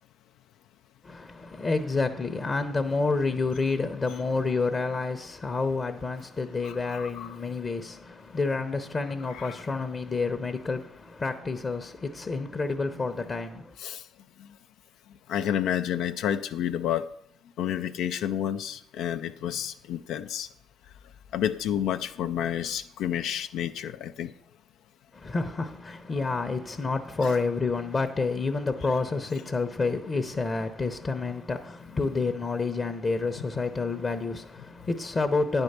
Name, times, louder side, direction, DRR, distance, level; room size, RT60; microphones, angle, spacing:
voice 1, 1.0-13.7 25.1-35.6, left 3 dB, 35° left, 0.8 m, -29 dB
voice 2, 6.6-7.4 9.3-9.5 13.8-14.0 14.4-14.5 15.3-17.1 17.6-20.5 21.3-24.3 27.2-27.3, left 10 dB, 70° left, 0.4 m, -30 dB
9.5 x 4.5 x 6.7 m
hypercardioid pair, 60°, 0 cm